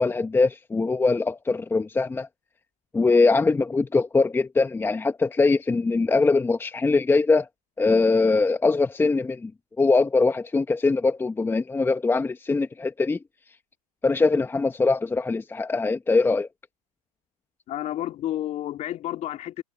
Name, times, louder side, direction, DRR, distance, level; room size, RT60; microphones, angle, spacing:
voice 1, 0.0-2.3 2.9-7.5 7.8-9.5 9.8-13.2 14.0-16.5, left 3 dB, 10° left, 1.6 m, -22 dB
voice 2, 17.7-19.6, left 12 dB, 35° left, 3.2 m, -30 dB
hypercardioid pair, 100°, 21 cm